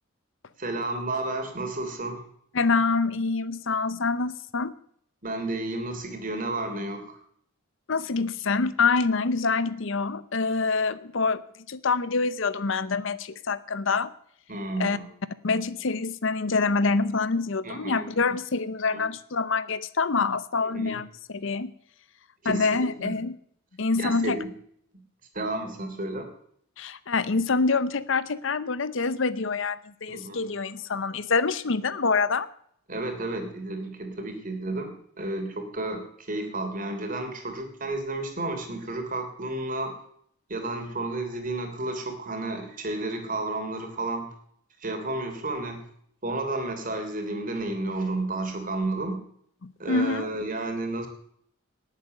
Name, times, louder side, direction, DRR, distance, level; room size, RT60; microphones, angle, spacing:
voice 1, 0.6-2.3 5.2-7.2 14.5-15.1 17.6-18.1 18.9-19.0 20.7-21.0 22.4-23.2 24.0-24.5 24.9-25.0 25.3-26.3 30.1-30.4 32.9-40.0 40.5-44.3 44.8-45.9 46.2-49.2 49.8-51.1, right 2 dB, 40° right, 5 dB, 3.1 m, -32 dB
voice 2, 2.5-4.7 7.9-11.4 11.7-14.1 14.8-15.0 15.4-21.7 22.4-23.3 23.8-24.4 26.8-32.5 49.6-50.3, left 4 dB, 60° left, 16 dB, 0.7 m, -26 dB
19.0 x 8.3 x 6.6 m, 0.66 s
head